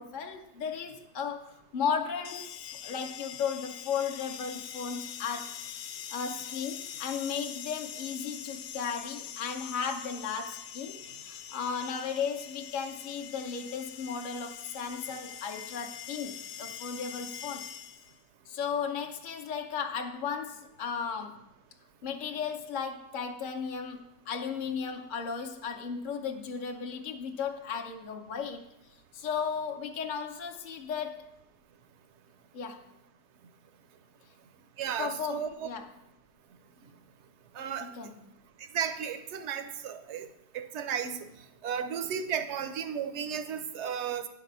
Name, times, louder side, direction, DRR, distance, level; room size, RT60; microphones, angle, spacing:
voice 1, 0.0-2.5 2.8-5.6 6.1-17.6 18.5-21.4 22.0-28.6 29.1-31.3 32.5-32.8 35.0-35.8 37.8-38.1, left 6 dB, 45° left, 3 dB, 0.6 m, -35 dB
sound 1, 2.2-18.2, left 9 dB, 90° left, 1.2 m, -43 dB
voice 2, 34.8-35.7 37.5-37.9 38.7-40.3 40.5-41.3 41.6-44.3, right 8 dB, 60° right, 10 dB, 0.7 m, -34 dB
10.0 x 4.1 x 6.7 m, 0.87 s
omnidirectional pair, 1.7 m